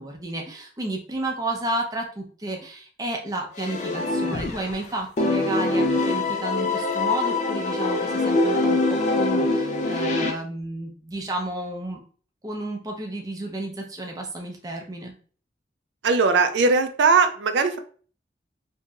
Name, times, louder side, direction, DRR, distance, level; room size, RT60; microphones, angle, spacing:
voice 1, 0.0-12.0 12.4-15.1, right 1 dB, 20° right, 1 dB, 0.5 m, -32 dB
sound 1, 3.6-4.8 5.2-10.3, left 2 dB, 40° left, 0.3 m, -24 dB
voice 2, 16.0-17.8, right 4 dB, 80° right, 8 dB, 0.4 m, -19 dB
2.9 x 2.6 x 2.3 m, 0.42 s
head